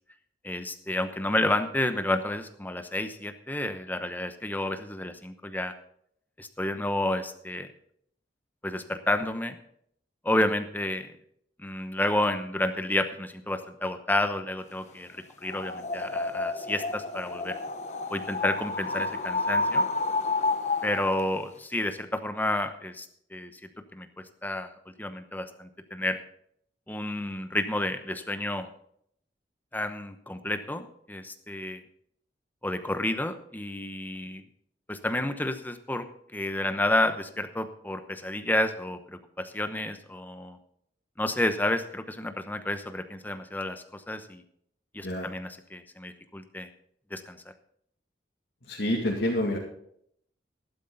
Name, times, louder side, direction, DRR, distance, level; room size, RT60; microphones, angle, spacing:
voice 1, 0.4-5.7 6.4-7.7 8.6-9.6 10.2-11.1 11.6-17.6 18.1-19.8 20.8-23.1 23.3-23.5 23.9-26.2 26.9-28.7 29.7-31.8 32.6-34.4 34.9-36.1 36.3-40.6 41.2-44.4 44.9-46.7 47.1-47.4, left 1 dB, 10° left, 8 dB, 0.9 m, -30 dB
sound 1, 15.4-21.2, left 3 dB, 40° left, 0.9 m, -30 dB
voice 2, 48.6-49.6, left 1 dB, 70° left, -3 dB, 2.4 m, -28 dB
13.5 x 12.0 x 4.0 m, 0.68 s
head